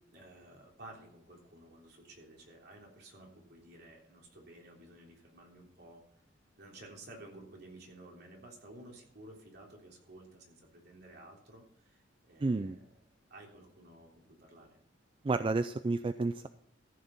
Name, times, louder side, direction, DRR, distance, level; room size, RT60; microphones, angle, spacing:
voice 1, 0.1-6.0 6.6-12.9 13.3-14.8, right 1 dB, 60° right, -1 dB, 3.5 m, -54 dB
voice 2, 12.4-12.8 15.2-16.5, right 3 dB, 30° right, 11 dB, 0.4 m, -31 dB
14.5 x 6.5 x 5.9 m, 0.70 s
head